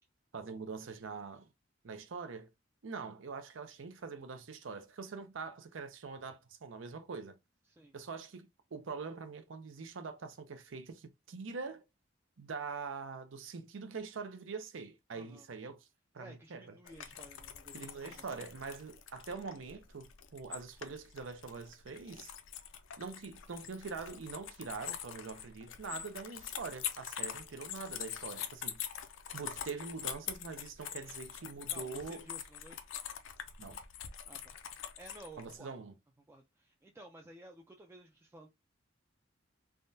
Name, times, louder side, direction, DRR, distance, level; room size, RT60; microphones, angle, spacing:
voice 1, 0.3-1.5 1.8-2.5 2.8-7.4 7.9-11.8 12.4-15.9 16.1-16.7 17.7-22.3 23.0-28.8 29.3-32.3 33.6-33.8 35.4-35.9, right 4 dB, 80° right, 0.6 m, -44 dB
voice 2, 15.1-15.5 16.2-18.4 31.7-32.9 34.3-34.5 35.0-35.7 36.3-38.5, right 1 dB, 15° right, 0.3 m, -54 dB
sound 1, 16.8-35.6, left 9 dB, 80° left, 0.5 m, -44 dB
3.5 x 2.2 x 2.6 m
head